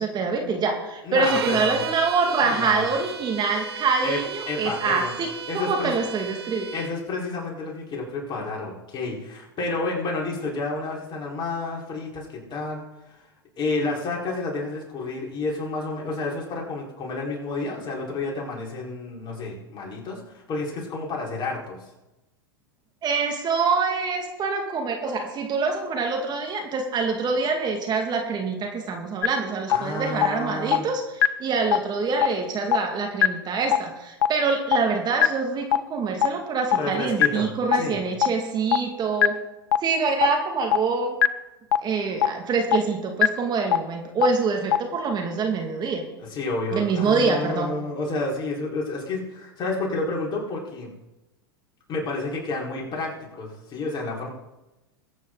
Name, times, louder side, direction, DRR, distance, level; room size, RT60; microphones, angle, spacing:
voice 1, 0.0-5.3 5.5-6.7 23.0-39.4 39.8-41.2 41.8-46.0 46.7-47.7, right 4 dB, 35° right, 3 dB, 2.2 m, -25 dB
voice 2, 1.0-1.8 2.4-2.9 4.0-4.2 4.5-5.1 5.5-5.9 6.7-12.8 13.6-21.8 29.7-30.8 36.8-37.5 37.7-38.0 46.2-50.9 51.9-54.3, left 3 dB, 35° left, -2 dB, 4.7 m, -30 dB
sound 1, 1.2-6.9, right 7 dB, 80° right, 1.2 m, -35 dB
sound 2, 29.2-29.3 29.7-29.8 30.2-30.3 30.7-30.8 31.2-31.3 31.7-31.8 32.2-32.3 32.7-32.8 33.2-33.3 33.7-33.8 34.2-34.3 34.7-34.8 35.2-35.3 35.7-35.8 36.2-36.3 36.7-36.8 37.2-37.3 37.7-37.8 38.2-38.3 38.7-38.8 39.2-39.3 39.7-39.8 40.2-40.3 40.7-40.8 41.2-41.3 41.7-41.8 42.2-42.3 42.7-42.8 43.2-43.3 43.7-43.8 44.2-44.3 44.7-44.8, left 11 dB, 70° left, 0.6 m, -16 dB
21.5 x 8.9 x 4.0 m, 1.0 s
hypercardioid pair, 95°, 13 cm